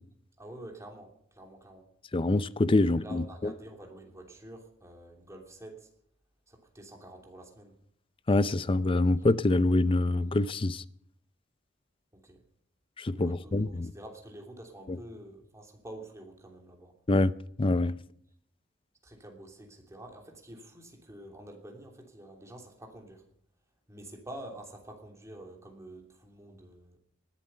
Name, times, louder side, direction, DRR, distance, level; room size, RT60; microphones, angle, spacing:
voice 1, 0.4-1.9 2.8-5.9 6.5-7.8 12.1-12.4 13.1-16.9 19.0-23.2 23.9-27.0, right 1 dB, 15° right, 3.0 m, -48 dB
voice 2, 2.1-3.5 8.3-10.8 13.0-13.9 14.9-15.0 17.1-17.9, left 2 dB, 25° left, 0.5 m, -25 dB
19.5 x 11.5 x 5.6 m
head